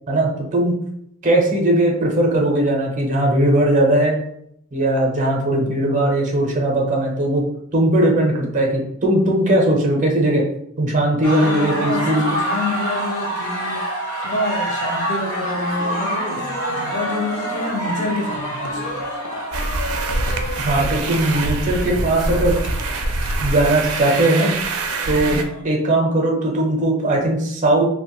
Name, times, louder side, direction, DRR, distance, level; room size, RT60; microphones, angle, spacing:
voice 1, 0.1-0.7 1.2-4.2 4.7-7.4 7.7-10.4 10.8-12.3 20.6-22.5 23.4-24.5 25.1-27.8, right 1 dB, 35° right, 0 dB, 0.6 m, -18 dB
sound 1, 11.2-21.9, right 1 dB, 65° left, 0.8 m, -27 dB
voice 2, 11.3-19.0 25.2-25.7, left 2 dB, 35° left, 0 dB, 0.5 m, -28 dB
Laughter, 15.7-23.8, left 1 dB, 90° left, 0.4 m, -34 dB
sound 2, 19.5-25.4, right 2 dB, 90° right, 0.4 m, -24 dB
2.9 x 2.1 x 2.9 m, 0.74 s
head